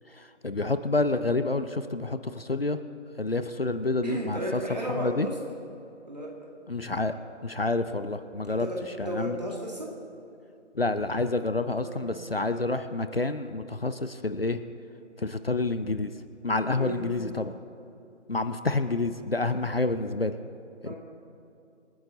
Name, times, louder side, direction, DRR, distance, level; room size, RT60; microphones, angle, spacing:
voice 1, 0.1-2.8 3.2-5.3 6.7-7.1 7.4-8.7 9.0-9.4 10.7-14.6 15.2-16.1 16.4-17.5 18.3-20.3 20.8-20.9, left 2 dB, 50° left, 10 dB, 0.6 m, -28 dB
voice 2, 4.0-5.4 6.1-6.3 8.6-8.8 9.1-9.9 11.7-12.1 16.8-17.0 20.8-20.9, right 1 dB, 35° right, -1 dB, 2.1 m, -33 dB
27.0 x 9.6 x 4.0 m, 2.7 s
figure-of-eight pair, 175°, 37 cm